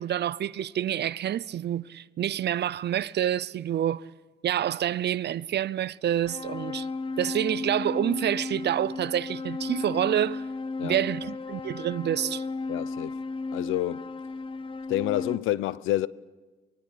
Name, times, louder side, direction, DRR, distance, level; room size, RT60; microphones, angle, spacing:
voice 1, 0.0-4.1 4.4-6.9 7.2-10.4 10.8-12.5, right 11 dB, 60° right, 0.7 m, -28 dB
sound 1, 6.2-15.4, left 3 dB, 25° left, 1.0 m, -34 dB
voice 2, 12.7-13.2 13.5-14.0 14.9-16.1, left 15 dB, 90° left, 0.7 m, -28 dB
23.5 x 22.5 x 8.5 m
cardioid pair, 90°, 20 cm